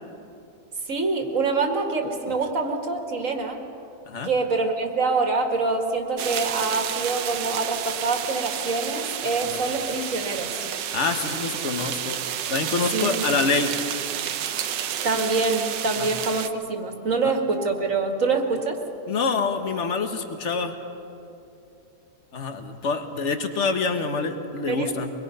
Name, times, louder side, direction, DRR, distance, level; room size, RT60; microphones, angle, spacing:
voice 1, 0.9-3.6 4.2-10.7 12.9-13.3 15.0-18.8 24.7-24.9, right 3 dB, 50° right, 4 dB, 2.1 m, -25 dB
sound 1, 6.2-16.5, right 9 dB, 80° right, 1.4 m, -30 dB
voice 2, 10.9-12.2 12.5-13.7 16.0-16.1 17.2-17.3 19.1-20.8 22.3-25.1, left 4 dB, 45° left, 7 dB, 1.5 m, -26 dB
24.0 x 21.5 x 5.5 m, 2.7 s
omnidirectional pair, 1.9 m